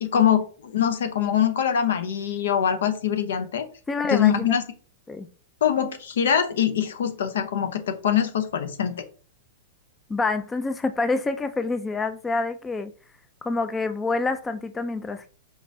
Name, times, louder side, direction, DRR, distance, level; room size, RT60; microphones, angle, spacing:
voice 1, 0.0-3.7 4.1-4.6 5.6-9.0, left 9 dB, 80° left, 0.7 m, -23 dB
voice 2, 3.9-4.5 5.1-5.3 10.1-12.9 13.4-15.3, left 3 dB, 15° left, 0.4 m, -27 dB
5.0 x 3.2 x 2.7 m
hypercardioid pair, 120°, 0 cm